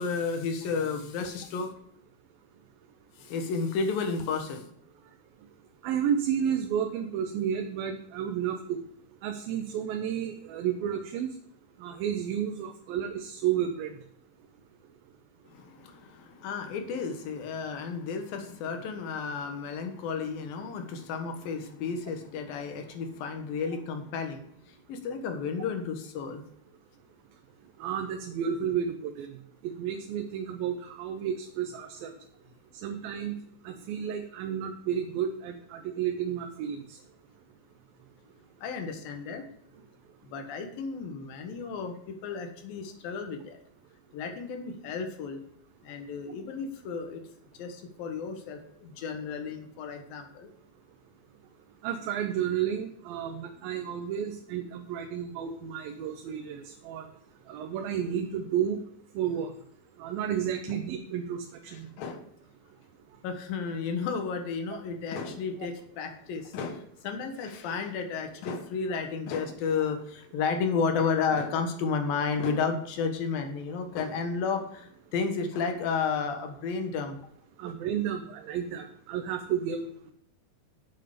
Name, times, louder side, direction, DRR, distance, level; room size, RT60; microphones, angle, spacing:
voice 1, 0.0-1.7 3.2-4.6 15.5-24.5 24.9-26.4 38.6-39.4 40.2-43.6 44.1-45.4 45.8-47.2 47.6-50.5 60.7-60.8 61.7-62.3 63.2-77.2 77.6-77.7, left 5 dB, 70° left, 5 dB, 3.1 m, -32 dB
voice 2, 5.8-8.8 9.2-11.3 11.8-13.9 27.8-29.3 29.6-32.1 32.7-33.4 33.7-37.0 51.8-57.1 57.5-58.8 59.2-59.5 60.0-61.9 77.6-80.1, right 9 dB, 75° right, 4 dB, 2.6 m, -31 dB
9.8 x 7.7 x 5.1 m, 0.68 s
omnidirectional pair, 4.3 m